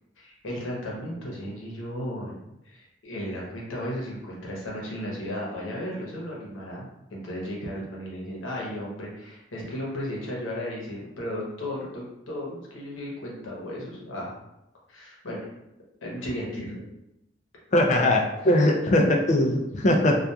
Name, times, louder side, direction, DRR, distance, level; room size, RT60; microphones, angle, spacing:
voice 1, 0.2-6.9 7.1-14.4 14.9-15.5 16.0-16.8, equal, 85° left, -4 dB, 0.8 m, -35 dB
voice 2, 17.7-20.2, left 1 dB, 35° left, 2 dB, 0.3 m, -21 dB
2.7 x 2.3 x 2.3 m, 0.89 s
head